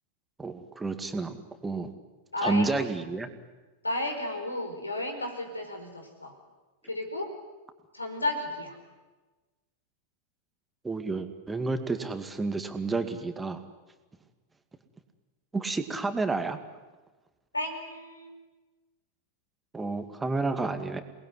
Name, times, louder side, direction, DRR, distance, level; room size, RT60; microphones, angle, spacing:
voice 1, 0.4-1.9 2.4-3.3 10.8-13.6 15.5-16.6 19.7-21.0, right 3 dB, 10° right, 7 dB, 2.3 m, -30 dB
voice 2, 2.3-2.9 3.8-6.4 6.8-7.3 7.9-8.8 17.5-18.3, left 1 dB, 80° left, 5 dB, 5.0 m, -33 dB
28.0 x 20.5 x 9.8 m, 1.2 s
figure-of-eight pair, 90°, 0 cm